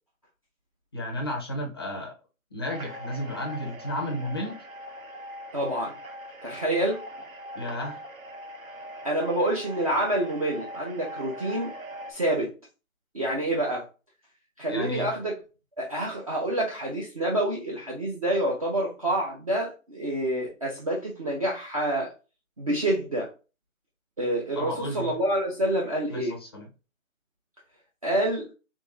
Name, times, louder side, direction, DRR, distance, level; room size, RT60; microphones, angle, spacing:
voice 1, 0.9-2.1 2.5-4.6 7.5-8.0 14.7-15.1 24.6-25.1 26.1-26.7, left 1 dB, 20° left, 0.5 m, -33 dB
sound 1, 2.7-12.1, equal, 75° right, 1.0 m, -41 dB
voice 2, 5.5-6.0 6.4-7.0 9.0-11.7 12.1-12.5 13.1-13.9 14.6-15.3 15.8-22.1 22.6-23.3 24.2-26.4 28.0-28.5, right 1 dB, 25° right, 0.5 m, -27 dB
3.6 x 3.4 x 2.9 m
figure-of-eight pair, 145°, 42 cm